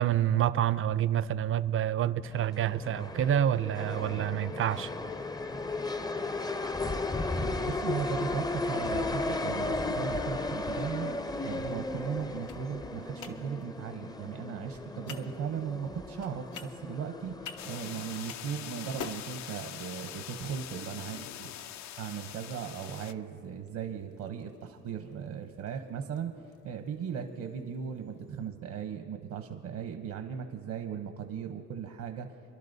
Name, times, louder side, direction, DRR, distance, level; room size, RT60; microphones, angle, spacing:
voice 1, 0.0-4.9, right 10 dB, 45° right, 0.4 m, -28 dB
sound 1, 2.2-18.2, left 2 dB, 15° left, 0.4 m, -35 dB
voice 2, 7.3-21.5 22.0-26.3 26.6-32.3, right 7 dB, 75° right, 0.9 m, -37 dB
sound 2, 10.6-28.5, left 6 dB, 85° left, 0.8 m, -52 dB
sound 3, 17.6-23.1, left 11 dB, 65° left, 0.5 m, -43 dB
26.5 x 11.5 x 2.7 m
cardioid pair, 90°, 30 cm